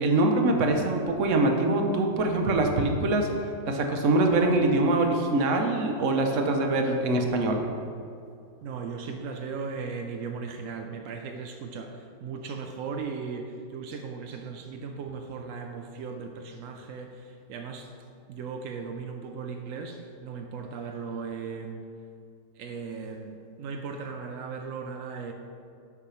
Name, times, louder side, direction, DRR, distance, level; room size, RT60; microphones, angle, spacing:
voice 1, 0.0-3.3 3.7-7.6, right 2 dB, 55° right, 3 dB, 0.9 m, -24 dB
voice 2, 8.6-17.9 18.3-21.8 22.6-25.3, right 5 dB, 80° right, 4 dB, 0.7 m, -37 dB
8.5 x 4.8 x 5.7 m, 2.4 s
omnidirectional pair, 2.0 m